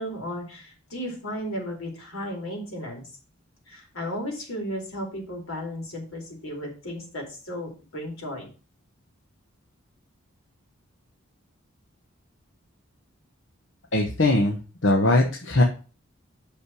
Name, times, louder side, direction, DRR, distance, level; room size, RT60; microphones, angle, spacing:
voice 1, 0.0-3.0 3.7-8.5, equal, 85° left, 0 dB, 4.2 m, -34 dB
voice 2, 13.9-15.6, left 2 dB, 65° left, 2 dB, 1.2 m, -21 dB
6.5 x 5.7 x 6.2 m, 0.35 s
head